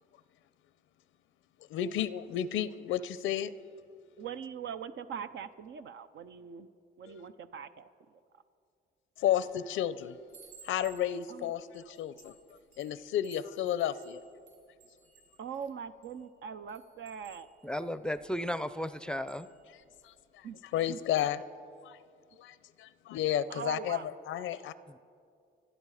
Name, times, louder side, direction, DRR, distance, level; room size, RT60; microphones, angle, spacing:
voice 1, 1.7-3.5 7.1-7.2 9.2-10.2 10.6-12.3 12.8-14.2 20.0-20.1 20.6-21.4 21.8-22.0 22.4-24.7, left 11 dB, 80° left, 16 dB, 0.6 m, -32 dB
voice 2, 4.2-6.7 7.0-7.9 11.3-11.5 15.4-17.5 20.4-20.6 20.9-21.0 23.5-24.0, right 7 dB, 70° right, 10 dB, 0.7 m, -41 dB
Chime, 9.2-9.5 9.9-16.2 16.7-20.1 20.5-20.8 21.0-21.4, right 5 dB, 45° right, 5.5 m, -60 dB
voice 3, 17.6-19.5 24.9-25.0, equal, 5° left, 13 dB, 0.5 m, -34 dB
29.0 x 10.0 x 4.9 m, 2.3 s
cardioid pair, 90°, 20 cm